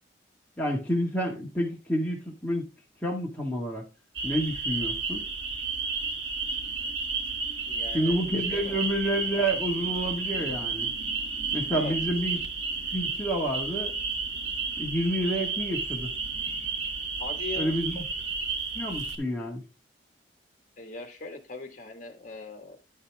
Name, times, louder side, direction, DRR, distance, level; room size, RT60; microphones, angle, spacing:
voice 1, 0.6-2.7 3.0-3.8 4.2-5.2 7.9-10.9 11.5-12.4 12.9-14.0 14.8-16.1 17.6-18.0 18.7-19.6, equal, 10° left, 1.7 m, -29 dB
sound 1, 4.2-19.2, right 4 dB, 90° right, 1.5 m, -32 dB
voice 2, 7.6-8.2 8.5-8.8 11.7-11.9 17.2-17.8 20.8-22.8, left 2 dB, 45° left, 1.6 m, -39 dB
10.0 x 5.5 x 3.5 m
head